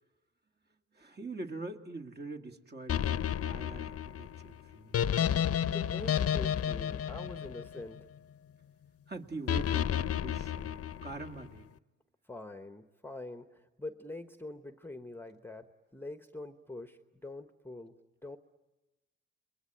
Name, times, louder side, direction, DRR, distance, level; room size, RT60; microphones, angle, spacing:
voice 1, 0.9-5.0 9.1-11.6, right 2 dB, 35° right, 4 dB, 2.1 m, -43 dB
sound 1, 2.9-8.2 9.5-11.4, left 9 dB, 50° left, 0.8 m, -31 dB
voice 2, 5.6-8.1 12.3-15.7 15.9-18.4, left 2 dB, 5° left, 8 dB, 1.1 m, -45 dB
29.0 x 22.0 x 9.1 m, 1.1 s
cardioid pair, 90°, 30 cm